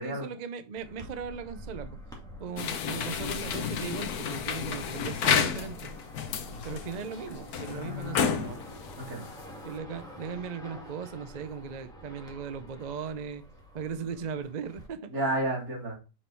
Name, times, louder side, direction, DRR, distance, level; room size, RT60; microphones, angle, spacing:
voice 1, 0.0-2.0 2.4-5.9 6.6-8.6 9.6-13.4 13.7-15.3, right 6 dB, 80° right, 0.3 m, -38 dB
sound 1, 0.8-14.9, right 1 dB, ahead, 1.9 m, -47 dB
sound 2, 2.6-9.8, left 7 dB, 65° left, 1.3 m, -31 dB
voice 2, 7.6-8.4 9.0-9.3 15.1-16.0, right 1 dB, 60° right, 3.2 m, -32 dB
6.6 x 5.3 x 4.5 m
omnidirectional pair, 1.8 m